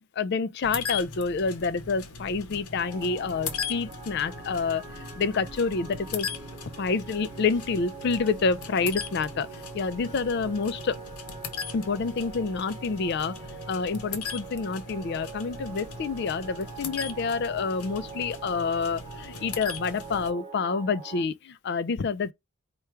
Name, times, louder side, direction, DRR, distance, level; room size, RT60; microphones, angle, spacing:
voice 1, 0.2-6.3 6.8-11.0 11.7-13.3 13.7-22.3, left 4 dB, 50° left, 0.4 m, -28 dB
sound 1, 0.6-20.3, left 5 dB, 85° left, 0.8 m, -39 dB
sound 2, 2.8-21.2, right 5 dB, 30° right, 0.8 m, -44 dB
4.6 x 2.3 x 4.4 m
head